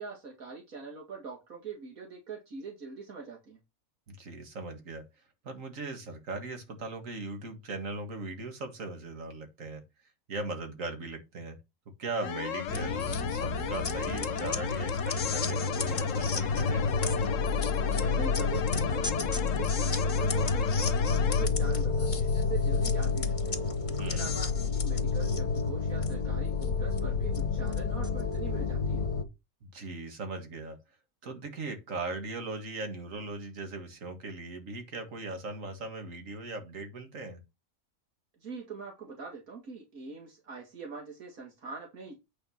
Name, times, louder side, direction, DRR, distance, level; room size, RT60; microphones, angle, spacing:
voice 1, 0.0-3.6 17.9-23.6 23.9-29.0 38.4-42.1, right 5 dB, 85° right, 2.4 m, -42 dB
voice 2, 4.1-5.0 5.4-9.8 10.3-11.6 12.0-16.8 24.0-24.3 29.6-30.8 31.2-37.4, right 3 dB, 70° right, 2.2 m, -39 dB
sound 1, 12.2-21.5, left 9 dB, 65° left, 1.1 m, -35 dB
sound 2, 12.7-29.2, left 4 dB, 35° left, 1.2 m, -29 dB
8.9 x 4.4 x 5.7 m
omnidirectional pair, 1.4 m